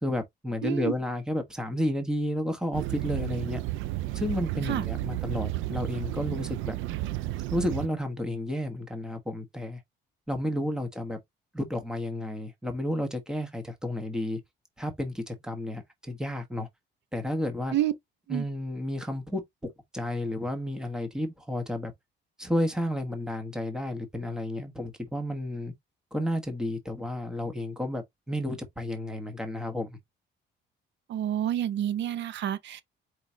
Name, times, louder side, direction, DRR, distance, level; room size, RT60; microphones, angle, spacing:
voice 1, 0.0-3.6 4.1-6.8 7.5-9.8 10.3-11.2 11.5-14.4 14.8-16.7 17.1-17.8 18.3-21.9 22.4-25.7 26.1-30.0, left 1 dB, 5° right, 1.2 m, -31 dB
voice 2, 0.6-0.9 4.6-4.9 17.7-17.9 18.3-18.4 31.1-32.8, right 12 dB, 65° right, 0.8 m, -29 dB
sound 1, 2.7-7.9, right 16 dB, 85° right, 0.4 m, -32 dB
4.8 x 3.8 x 2.8 m
cardioid pair, 125°, 20 cm